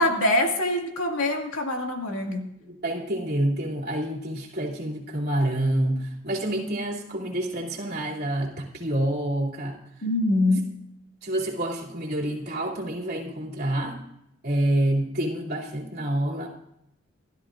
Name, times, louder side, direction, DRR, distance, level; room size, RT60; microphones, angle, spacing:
voice 1, 0.0-2.4 10.0-10.6, left 1 dB, 85° left, 1 dB, 2.4 m, -24 dB
voice 2, 2.6-9.8 11.2-14.0 14.4-16.5, right 1 dB, 50° right, -3 dB, 3.0 m, -27 dB
28.5 x 13.0 x 2.6 m, 0.82 s
head